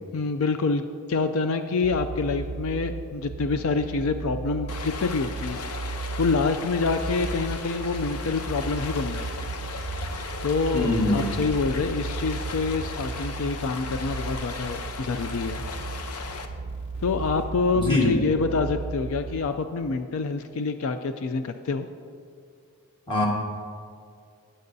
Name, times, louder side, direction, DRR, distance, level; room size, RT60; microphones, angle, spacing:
voice 1, 0.1-5.9 6.2-9.5 10.4-15.6 17.0-21.9, left 4 dB, 70° left, 8 dB, 0.4 m, -27 dB
Airplane Ambience, 1.8-19.6, right 4 dB, 65° right, 0.4 m, -35 dB
Stream, 4.7-16.5, left 4 dB, 85° left, 0.7 m, -37 dB
sound 1, 5.4-5.8 6.7-7.7 7.9-8.9 9.7-11.9 12.4-13.5 13.9-14.9 15.4-17.5, right 1 dB, 50° left, 2.2 m, -42 dB
voice 2, 10.7-11.4 17.8-18.2 23.1-23.3, left 2 dB, 20° left, -2 dB, 1.5 m, -23 dB
17.5 x 7.7 x 2.7 m, 2.3 s
head